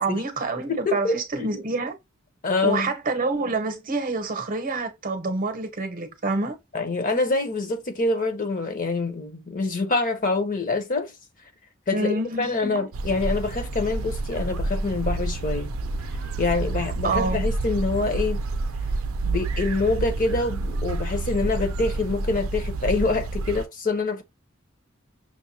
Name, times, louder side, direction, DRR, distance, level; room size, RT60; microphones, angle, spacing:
voice 1, 0.0-2.0 2.6-6.6 11.9-12.9 17.0-17.5, right 3 dB, 40° right, 0.8 m, -27 dB
voice 2, 0.7-1.6 2.4-2.9 6.7-11.1 11.9-15.7 16.4-18.4 19.2-24.2, left 3 dB, 40° left, 0.9 m, -26 dB
sound 1, 12.9-23.7, right 2 dB, 75° right, 0.5 m, -28 dB
6.0 x 2.3 x 2.7 m
head